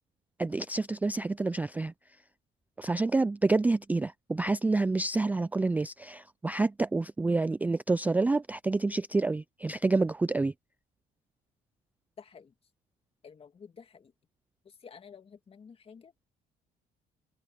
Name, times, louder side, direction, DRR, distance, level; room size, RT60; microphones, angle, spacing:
voice 1, 0.4-1.9 2.8-10.5, right 3 dB, 10° right, 0.3 m, -28 dB
voice 2, 12.2-12.5 13.2-14.1 14.6-16.3, left 6 dB, 35° left, 2.0 m, -51 dB
open air
cardioid pair, 110°, 17 cm